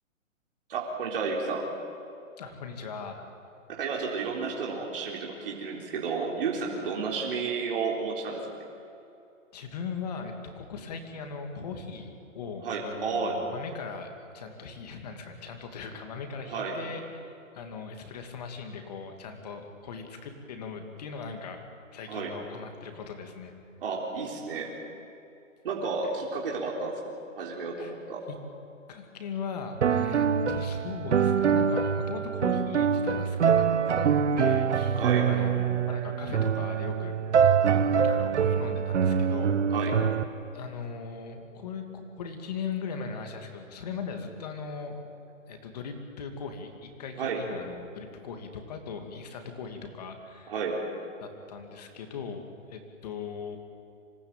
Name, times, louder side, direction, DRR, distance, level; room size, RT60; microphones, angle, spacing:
voice 1, 0.7-1.7 3.7-8.4 12.6-13.4 16.5-16.8 22.1-22.3 23.8-24.7 25.6-28.2 35.0-35.3 39.7-40.0 47.2-47.4 50.5-50.8, right 4 dB, 45° right, -2 dB, 3.9 m, -32 dB
voice 2, 2.4-3.3 9.5-21.6 21.9-23.5 27.8-27.9 28.3-28.4 28.9-33.7 34.0-37.2 37.9-39.6 40.5-45.0 45.5-50.5 51.2-53.6, left 5 dB, 30° left, 5 dB, 2.6 m, -39 dB
sound 1, 29.8-40.2, right 7 dB, 60° right, 1.2 m, -24 dB
26.5 x 18.5 x 9.1 m, 2.7 s
hypercardioid pair, 175°, 40 cm